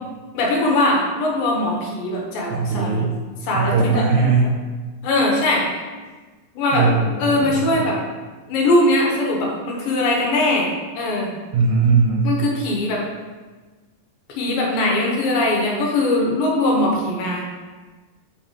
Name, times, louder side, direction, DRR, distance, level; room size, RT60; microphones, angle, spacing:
voice 1, 0.3-3.1 3.4-4.0 5.0-5.6 6.5-6.9 7.2-8.0 8.5-10.7 11.0-11.3 12.2-13.0 14.4-17.5, left 2 dB, 80° left, -2 dB, 2.9 m, -20 dB
voice 2, 2.5-3.1 3.5-4.5 6.7-7.8 11.5-12.3, right 4 dB, 70° right, -2 dB, 2.1 m, -19 dB
7.9 x 5.8 x 3.1 m, 1.3 s
omnidirectional pair, 4.1 m